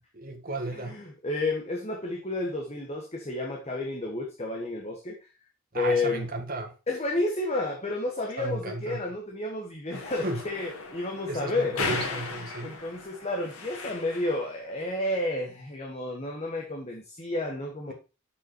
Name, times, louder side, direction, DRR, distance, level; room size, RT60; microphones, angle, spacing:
voice 1, 0.2-0.9 5.7-6.7 8.4-9.0 10.2-10.4 11.3-12.7, right 2 dB, 40° right, 1.6 m, -34 dB
voice 2, 0.7-5.2 5.7-6.3 6.9-11.8 12.3-17.9, left 2 dB, 30° left, 1.2 m, -31 dB
sound 1, 9.9-14.5, left 3 dB, 90° left, 1.8 m, -36 dB
6.8 x 5.6 x 4.3 m
head